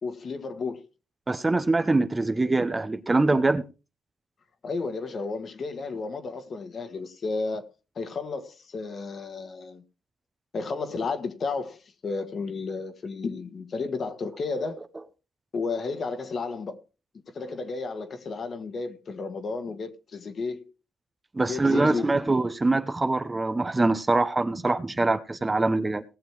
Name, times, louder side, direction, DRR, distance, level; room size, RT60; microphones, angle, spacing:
voice 1, 0.0-0.9 4.6-7.7 7.9-9.8 10.5-14.8 15.5-16.8 17.3-20.7 21.4-22.1, left 4 dB, 45° left, 1.7 m, -32 dB
voice 2, 1.3-3.7 21.3-26.0, right 2 dB, 20° right, 1.0 m, -24 dB
18.5 x 6.8 x 4.8 m
cardioid pair, 90°, 0 cm